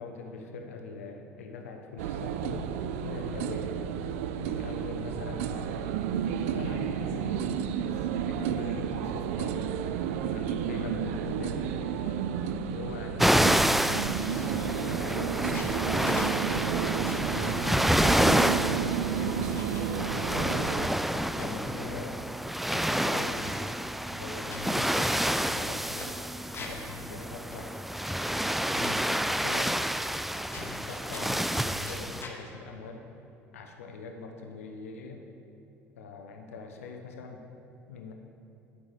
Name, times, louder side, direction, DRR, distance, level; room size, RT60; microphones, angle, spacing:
voice 1, 0.0-2.7 3.0-3.7 4.3-5.9 6.4-7.5 7.8-9.6 10.2-12.2 12.7-14.1 14.7-16.0 17.4-19.5 20.3-22.3 22.7-23.6 24.1-26.1 26.6-27.7 28.7-29.8 30.3-33.1 33.5-35.2 36.0-37.5 37.9-38.1, left 4 dB, 75° left, 4 dB, 0.9 m, -42 dB
sound 1, 2.0-20.9, right 8 dB, 65° right, 0.4 m, -32 dB
sound 2, 13.2-13.5 13.8-14.8 15.3-17.4 17.9-18.8 19.2-19.9 20.6-21.6 22.1-22.2 22.4-22.8 23.1-23.8 24.3-26.9 27.2-27.3 27.5-28.6 28.8-29.1 29.9-30.3 30.5-31.4 31.8-32.4, left 3 dB, 30° left, 1.7 m, -45 dB
sound 3, 13.2-32.2, right 1 dB, ahead, 0.3 m, -28 dB
9.9 x 8.2 x 4.8 m, 2.9 s
figure-of-eight pair, 65°, 8 cm